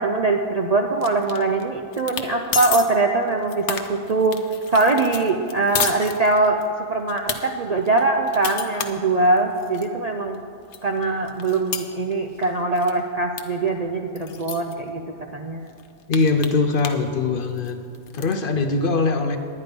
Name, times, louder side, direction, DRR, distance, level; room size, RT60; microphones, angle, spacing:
voice 1, 0.0-4.4 4.7-6.6 6.9-10.4 10.8-15.0 15.3-15.7, right 3 dB, 50° right, 3 dB, 0.5 m, -22 dB
sound 1, 1.0-1.6 1.9-2.3 2.5-2.9 3.3-6.7 7.1-7.4 7.9-9.9 10.3-10.4 10.7-12.5 12.8-13.0 13.4-13.5 13.7-13.8 14.2-14.7 15.3-15.4 15.7-17.1 17.4-18.3, left 8 dB, 70° left, 1.0 m, -30 dB
voice 2, 16.1-17.8 18.1-19.4, left 3 dB, 55° left, 7 dB, 0.7 m, -21 dB
10.5 x 9.5 x 5.2 m, 2.6 s
omnidirectional pair, 1.3 m